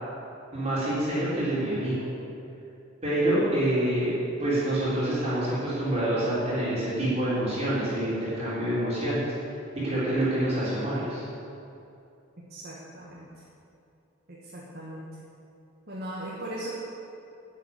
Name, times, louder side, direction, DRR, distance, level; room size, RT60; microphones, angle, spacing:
voice 1, 0.5-2.0 3.0-4.1 4.4-9.3 9.8-11.2, right 1 dB, 30° right, -10 dB, 3.8 m, -26 dB
voice 2, 12.5-13.3 14.3-15.1 15.9-16.8, right 1 dB, 50° right, -6 dB, 2.0 m, -38 dB
11.0 x 7.8 x 9.7 m, 2.7 s
head